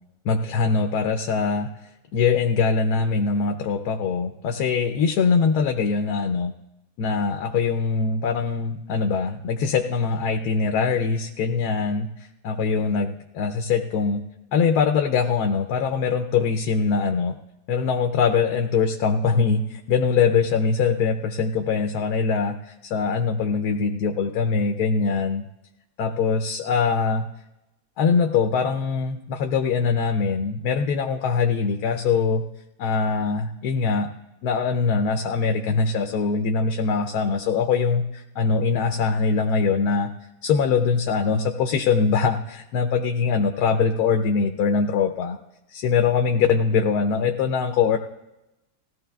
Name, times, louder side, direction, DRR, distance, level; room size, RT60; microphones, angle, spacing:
voice 1, 0.3-1.7 2.1-6.5 7.0-12.1 12.4-14.2 14.5-17.3 17.7-22.6 22.9-25.4 26.0-27.3 28.0-32.4 32.8-34.1 34.4-40.1 40.4-45.4 45.7-48.0, left 5 dB, 85° left, 5 dB, 1.2 m, -22 dB
19.0 x 14.0 x 2.3 m, 0.95 s
omnidirectional pair, 1.6 m